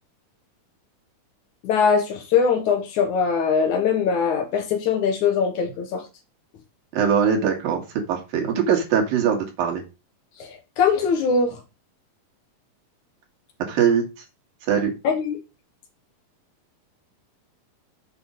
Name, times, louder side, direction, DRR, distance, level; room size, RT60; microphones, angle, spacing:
voice 1, 1.6-6.0 10.8-11.6 15.0-15.4, left 6 dB, 65° left, 2.6 m, -21 dB
voice 2, 6.9-9.8 13.7-14.0 14.7-14.9, right 7 dB, 90° right, 3.7 m, -21 dB
7.6 x 5.4 x 5.2 m
omnidirectional pair, 3.9 m